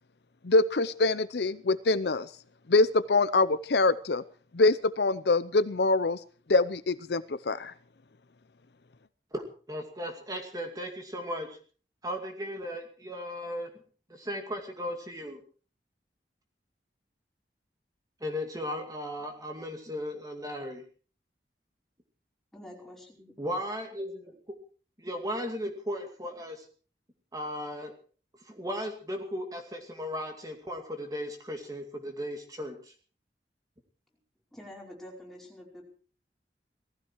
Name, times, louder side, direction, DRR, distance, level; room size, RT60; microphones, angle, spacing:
voice 1, 0.4-2.3 2.7-4.2 4.5-6.2 6.5-7.7, left 3 dB, 65° left, 15 dB, 0.7 m, -24 dB
voice 2, 9.3-11.6 12.0-13.7 14.1-15.4 18.2-20.8 23.4-24.6 25.0-26.7 27.3-27.9 28.4-32.9, equal, 20° right, 4 dB, 2.4 m, -36 dB
voice 3, 22.5-23.3 34.5-35.8, left 1 dB, ahead, -2 dB, 5.2 m, -47 dB
19.0 x 15.0 x 4.7 m, 0.41 s
head